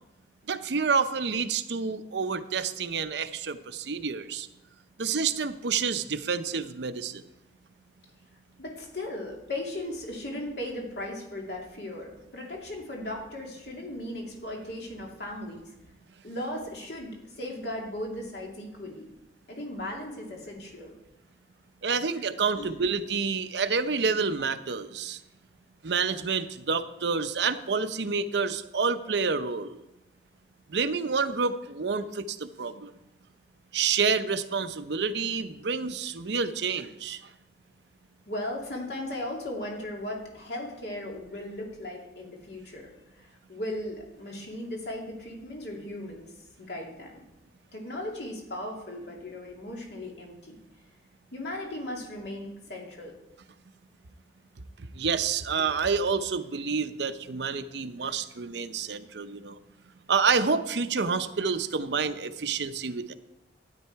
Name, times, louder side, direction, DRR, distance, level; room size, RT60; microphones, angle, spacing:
voice 1, 0.5-4.5 5.0-7.2 21.8-25.2 25.8-29.8 30.7-32.9 33.7-37.2 55.0-59.6 60.1-63.1, right 5 dB, 75° right, 10 dB, 0.7 m, -28 dB
voice 2, 8.6-15.7 16.2-19.1 19.5-21.0 22.5-22.8 38.3-46.3 46.6-47.2 47.7-50.5 51.3-53.2, left 1 dB, 70° left, -1 dB, 2.6 m, -37 dB
12.5 x 9.4 x 4.6 m, 0.93 s
head